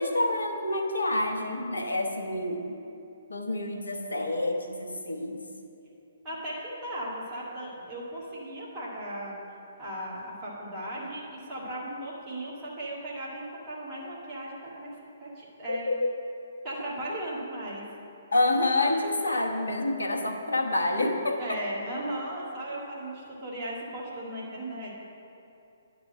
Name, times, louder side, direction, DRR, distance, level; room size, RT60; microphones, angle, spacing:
voice 1, 0.0-2.7 3.3-5.4 15.7-16.1 18.3-21.6, left 2 dB, 85° left, 4 dB, 1.0 m, -28 dB
voice 2, 6.2-9.4 9.8-14.9 15.2-15.9 16.6-17.9 21.4-24.9, right 1 dB, 25° right, -7 dB, 1.7 m, -37 dB
9.7 x 4.1 x 7.4 m, 2.8 s
figure-of-eight pair, 130°, 0 cm